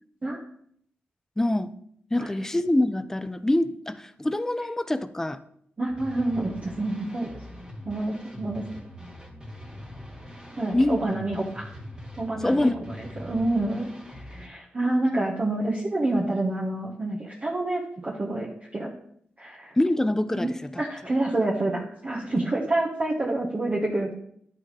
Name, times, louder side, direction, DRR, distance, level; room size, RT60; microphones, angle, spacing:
voice 1, 1.4-1.7 2.1-5.4 10.7-11.0 12.4-12.7 19.8-20.8, left 1 dB, 10° left, 12 dB, 0.4 m, -25 dB
voice 2, 5.8-7.3 7.8-8.6 10.6-11.6 12.2-13.9 14.2-18.9 19.4-19.8 20.3-24.1, right 2 dB, 35° right, -4 dB, 1.2 m, -28 dB
sound 1, 5.9-14.5, left 1 dB, 20° right, 1.7 m, -42 dB
10.5 x 4.2 x 4.7 m, 0.67 s
wide cardioid pair, 105°, 4 cm